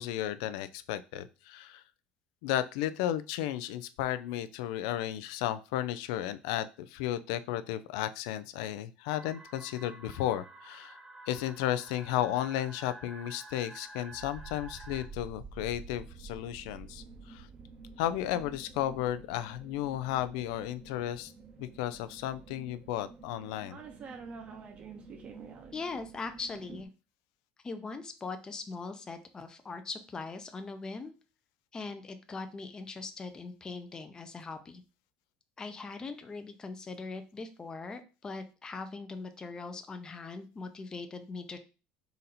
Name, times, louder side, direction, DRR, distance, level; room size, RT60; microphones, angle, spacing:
voice 1, 0.0-1.8 2.4-11.0 11.3-17.5 18.0-21.3 21.6-23.8, left 12 dB, 85° left, 13 dB, 0.3 m, -34 dB
sound 1, 9.1-15.1, right 2 dB, 10° right, 1.0 m, -50 dB
sound 2, 14.1-26.8, right 4 dB, 40° right, 0.8 m, -49 dB
voice 2, 25.7-26.9 27.6-31.1 31.7-34.8 35.6-41.6, left 4 dB, 20° left, 7 dB, 0.6 m, -41 dB
3.9 x 2.6 x 4.1 m, 0.33 s
cardioid pair, 120°, 3 cm